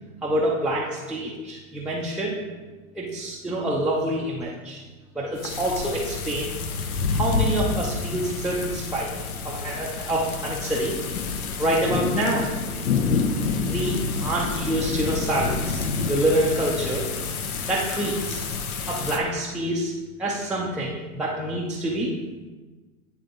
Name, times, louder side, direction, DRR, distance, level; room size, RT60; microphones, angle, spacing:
voice 1, 0.2-2.3 2.9-4.8 5.2-6.6 7.1-9.1 9.4-10.9 11.6-12.5 13.7-14.0 14.2-15.8 16.1-17.1 17.7-18.4 18.9-19.9 20.2-22.1, right 1 dB, 5° right, -6 dB, 0.5 m, -26 dB
sound 1, 5.4-19.2, left 5 dB, 85° left, 0.9 m, -28 dB
10.0 x 3.4 x 3.9 m, 1.3 s
hypercardioid pair, 125°, 42 cm